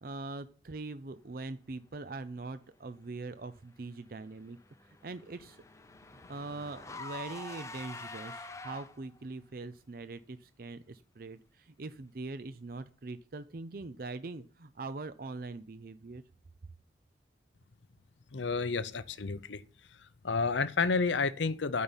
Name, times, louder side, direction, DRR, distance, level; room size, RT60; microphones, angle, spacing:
voice 1, 0.0-4.6 5.0-5.6 6.1-16.2, right 3 dB, 50° right, 0.6 m, -42 dB
Car / Engine, 4.2-9.2, left 3 dB, 15° left, 0.7 m, -46 dB
voice 2, 18.3-19.6 20.0-21.8, left 4 dB, 85° left, 0.7 m, -30 dB
12.5 x 5.6 x 8.9 m
head